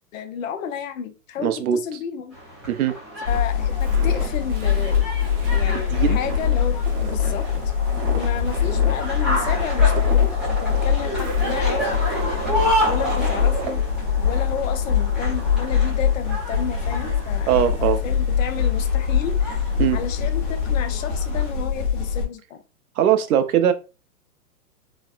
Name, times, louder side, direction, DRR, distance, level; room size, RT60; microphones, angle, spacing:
voice 1, 0.1-2.4 3.3-5.1 5.5-7.7 8.0-12.0 12.8-13.8 14.2-17.5 17.8-19.6 19.9-22.6, left 8 dB, 60° left, 0.6 m, -32 dB
voice 2, 1.4-1.8 2.7-3.0 5.7-6.2 17.5-18.0 19.8-20.0 23.0-23.7, right 10 dB, 70° right, 0.7 m, -20 dB
sound 1, 2.3-21.5, equal, ahead, 0.4 m, -31 dB
sound 2, 3.2-22.2, left 7 dB, 35° left, 1.0 m, -23 dB
Walk footsteps, 3.8-13.8, right 5 dB, 35° right, 0.8 m, -36 dB
4.1 x 2.1 x 2.4 m
hypercardioid pair, 130°, 46 cm